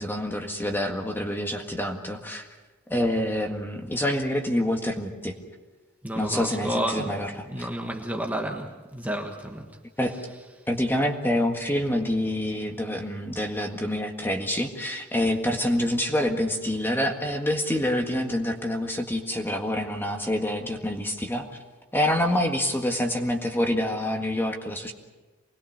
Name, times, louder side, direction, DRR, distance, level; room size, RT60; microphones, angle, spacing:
voice 1, 0.0-2.5 2.9-5.3 6.1-7.7 10.0-10.1 10.7-21.4 21.9-24.9, left 1 dB, 10° left, 3 dB, 1.7 m, -27 dB
voice 2, 6.0-7.1 7.5-9.7 10.2-10.4, right 1 dB, 5° right, 1 dB, 1.5 m, -31 dB
25.0 x 20.5 x 6.5 m, 1.2 s
head